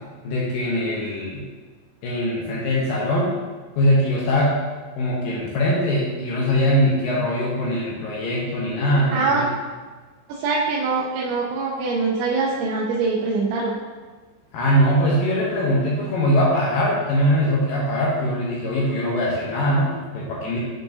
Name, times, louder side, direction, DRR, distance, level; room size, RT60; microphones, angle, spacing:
voice 1, 0.2-1.4 2.0-3.3 3.8-4.6 5.0-9.5 14.5-20.6, equal, 80° left, -4 dB, 2.1 m, -21 dB
voice 2, 9.1-9.4 10.3-13.7, right 4 dB, 85° right, -4 dB, 3.1 m, -23 dB
9.3 x 4.7 x 2.7 m, 1.4 s
omnidirectional pair, 5.2 m